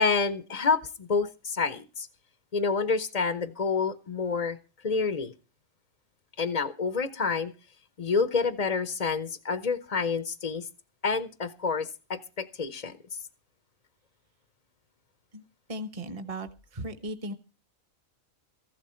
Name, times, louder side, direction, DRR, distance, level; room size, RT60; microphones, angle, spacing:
voice 1, 0.0-2.1 2.5-4.6 4.8-5.3 6.4-7.5 8.0-10.7 11.0-13.0, left 4 dB, 40° left, 0.7 m, -28 dB
voice 2, 15.7-16.5 16.7-17.3, right 1 dB, 30° right, 1.1 m, -36 dB
15.0 x 12.0 x 4.3 m
omnidirectional pair, 1.4 m